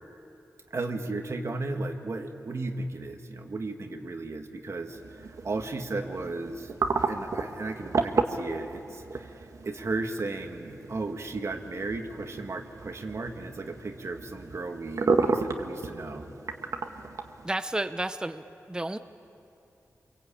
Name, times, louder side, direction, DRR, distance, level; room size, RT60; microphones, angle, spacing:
voice 1, 0.7-6.7 7.1-16.3, right 3 dB, 55° right, 4 dB, 1.9 m, -35 dB
sound 1, 4.9-17.5, right 4 dB, 75° right, 1.5 m, -33 dB
voice 2, 17.4-19.0, right 1 dB, 15° right, 9 dB, 0.7 m, -32 dB
28.0 x 23.5 x 8.7 m, 2.8 s
wide cardioid pair, 100°, 6 cm